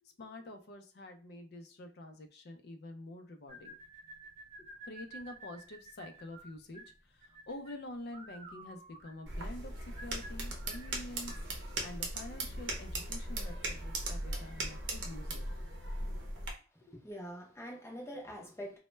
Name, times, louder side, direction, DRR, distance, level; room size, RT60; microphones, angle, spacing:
voice 1, 0.0-3.7 4.6-9.7 10.0-11.3 11.8-13.6 13.8-15.7 16.1-16.3 16.8-17.0, left 1 dB, 60° left, 6 dB, 0.4 m, -47 dB
sound 1, 3.5-11.5, right 2 dB, 35° right, 0.6 m, -52 dB
sound 2, 9.3-16.5, right 1 dB, 80° right, 0.6 m, -38 dB
voice 2, 16.7-18.8, equal, 15° left, -1 dB, 0.6 m, -44 dB
2.1 x 2.0 x 3.0 m, 0.37 s
head